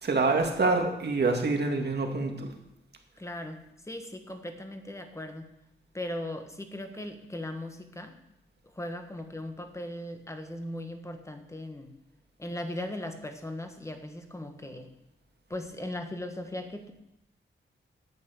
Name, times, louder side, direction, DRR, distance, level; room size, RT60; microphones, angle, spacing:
voice 1, 0.0-2.5, right 3 dB, 50° right, 3 dB, 2.0 m, -26 dB
voice 2, 3.2-5.5 5.9-8.1 8.7-11.9 12.4-14.9 15.5-16.9, left 1 dB, 15° left, 6 dB, 1.4 m, -38 dB
11.0 x 8.5 x 6.9 m, 0.84 s
wide cardioid pair, 125°, 21 cm